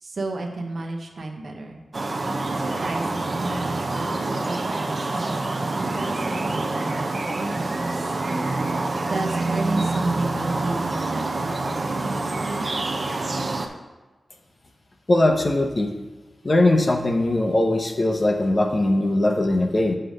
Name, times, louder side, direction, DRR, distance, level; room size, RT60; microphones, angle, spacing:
voice 1, 0.0-1.8 2.5-7.1 7.3-8.1 9.1-12.7, right 2 dB, 60° right, 2 dB, 1.0 m, -32 dB
sound 1, 1.9-13.7, right 2 dB, 45° right, 0.7 m, -26 dB
voice 2, 15.1-15.9 16.4-20.0, left 1 dB, 40° left, 3 dB, 0.8 m, -20 dB
7.8 x 3.3 x 6.4 m, 1.2 s
wide cardioid pair, 110°, 0 cm